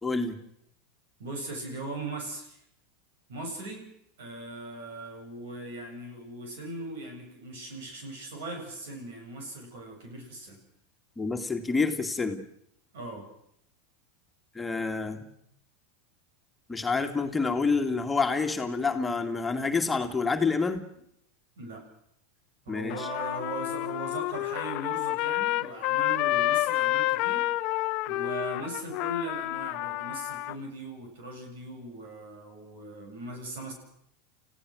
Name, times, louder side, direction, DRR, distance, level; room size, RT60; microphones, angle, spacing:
voice 1, 0.0-0.4 11.2-12.4 14.5-15.3 16.7-20.8 22.7-23.1, left 4 dB, 15° left, 4 dB, 2.3 m, -28 dB
voice 2, 1.2-2.6 3.3-3.8 4.2-10.6 12.9-13.3 21.6-21.8 22.7-27.4 27.7-33.7, right 2 dB, 75° right, 3 dB, 7.4 m, -39 dB
Trumpet, 22.9-30.5, left 17 dB, 55° left, 0.9 m, -29 dB
30.0 x 15.5 x 6.4 m, 0.73 s
hypercardioid pair, 100°, 0 cm